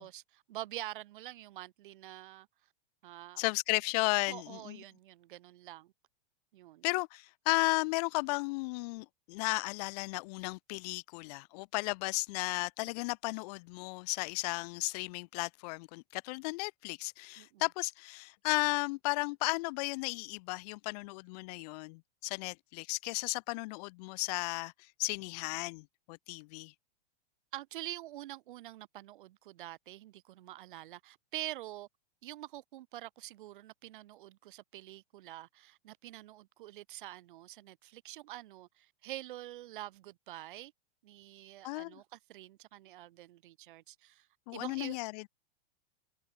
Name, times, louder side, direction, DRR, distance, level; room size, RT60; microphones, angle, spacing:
voice 1, 0.0-2.5 3.0-3.4 4.3-5.9 6.5-6.9 17.4-17.6 27.5-31.9 32.2-40.7 41.0-44.3 44.5-45.0, right 15 dB, 60° right, 7.9 m, -46 dB
voice 2, 3.4-4.8 6.8-26.7 41.6-42.0 44.5-45.3, left 26 dB, 40° left, 8.0 m, -34 dB
supercardioid pair, 165°, 30 cm